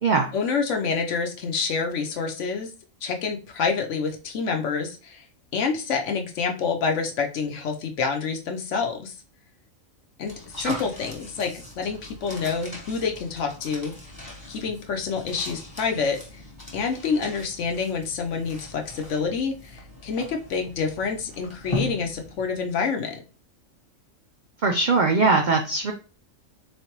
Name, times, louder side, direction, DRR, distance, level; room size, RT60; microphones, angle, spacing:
voice 1, 0.3-2.7 3.0-5.2 5.5-9.1 10.2-13.9 14.5-16.2 16.7-23.2, left 5 dB, 65° left, 4 dB, 1.0 m, -27 dB
sound 1, 10.2-22.8, left 2 dB, 15° left, 1.0 m, -39 dB
voice 2, 24.6-25.9, right 4 dB, 65° right, 3 dB, 0.4 m, -21 dB
4.0 x 3.2 x 2.9 m, 0.34 s
omnidirectional pair, 1.4 m